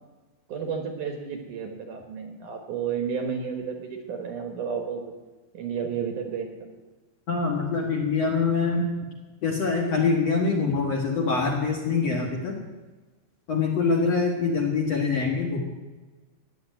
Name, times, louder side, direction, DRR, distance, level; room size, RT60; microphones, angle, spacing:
voice 1, 0.5-5.1 5.5-6.7, right 6 dB, 60° right, 4 dB, 2.5 m, -32 dB
voice 2, 7.3-8.9 9.4-12.6 13.5-15.6, left 4 dB, 55° left, 0 dB, 2.1 m, -24 dB
15.0 x 10.0 x 9.1 m, 1.2 s
omnidirectional pair, 4.8 m